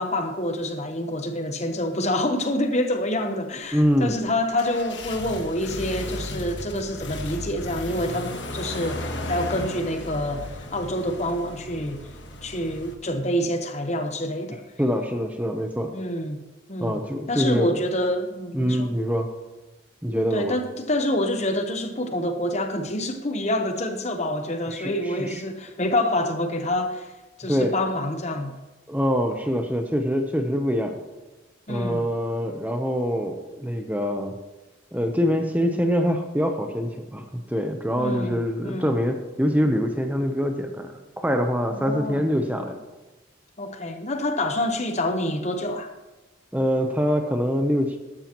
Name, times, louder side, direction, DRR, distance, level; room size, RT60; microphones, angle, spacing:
voice 1, 0.0-12.0 12.4-14.6 15.9-16.4 16.7-17.0 17.3-18.9 20.3-27.1 27.4-28.5 31.7-32.0 38.0-39.0 41.7-42.2 43.6-45.9, left 1 dB, 35° left, 0.9 m, -27 dB
voice 2, 3.7-4.1 14.8-15.9 16.8-17.7 18.5-19.3 20.0-20.5 24.7-25.4 27.5-27.7 28.9-31.0 31.7-34.4 34.9-42.8 46.5-48.0, equal, 10° right, 0.7 m, -24 dB
sound 1, 4.1-12.9, left 1 dB, 65° left, 1.3 m, -35 dB
13.5 x 12.5 x 3.0 m
head